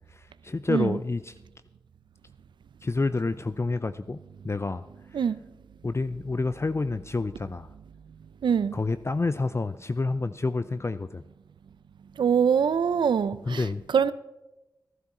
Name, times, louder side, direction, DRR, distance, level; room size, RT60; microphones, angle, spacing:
voice 1, 0.1-1.3 2.8-4.2 4.4-4.8 5.8-7.7 8.7-11.2 13.5-13.8, left 3 dB, 35° left, 13 dB, 0.5 m, -28 dB
voice 2, 0.7-1.0 5.1-5.4 8.4-8.7 12.2-13.6 13.9-14.1, right 7 dB, 90° right, 16 dB, 0.5 m, -23 dB
15.5 x 11.0 x 4.3 m, 0.99 s
cardioid pair, 45°, 8 cm